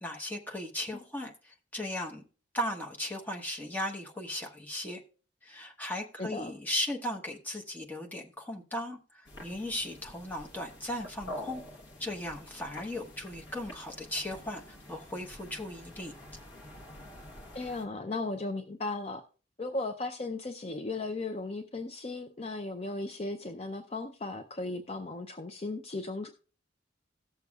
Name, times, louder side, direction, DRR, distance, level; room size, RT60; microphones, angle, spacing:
voice 1, 0.0-2.2 2.5-5.0 5.4-11.6 12.0-16.1, left 1 dB, 10° left, 1.0 m, -37 dB
voice 2, 6.2-6.5 17.5-19.2 19.6-26.3, left 2 dB, 30° left, 0.5 m, -36 dB
sound 1, 9.2-17.8, left 1 dB, 65° left, 1.3 m, -47 dB
17.5 x 6.9 x 2.4 m
head